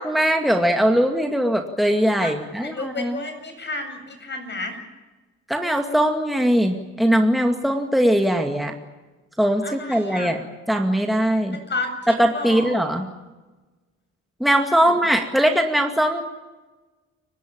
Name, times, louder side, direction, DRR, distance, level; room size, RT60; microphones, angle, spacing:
voice 1, 0.0-3.2 5.5-8.7 9.4-10.4 10.7-11.6 12.1-13.1 14.4-16.2, equal, ahead, 4 dB, 2.2 m, -20 dB
voice 2, 2.2-4.8 9.6-10.3 11.7-12.8 14.7-14.9, left 2 dB, 35° left, 6 dB, 7.9 m, -32 dB
29.5 x 17.5 x 8.8 m, 1.2 s
cardioid pair, 90°, 30 cm